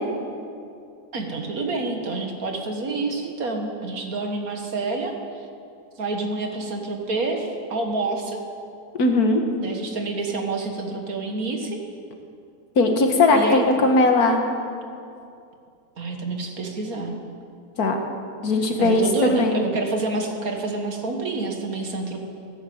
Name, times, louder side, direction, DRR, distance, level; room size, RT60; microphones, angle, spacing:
voice 1, 1.1-5.2 6.0-8.4 9.6-11.8 13.3-13.7 16.0-17.2 18.8-22.3, right 3 dB, 60° right, 3 dB, 2.0 m, -28 dB
voice 2, 9.0-9.4 12.8-14.4 17.8-18.0 18.4-19.6, left 2 dB, 70° left, 4 dB, 1.9 m, -19 dB
16.5 x 10.5 x 7.9 m, 2.5 s
omnidirectional pair, 1.7 m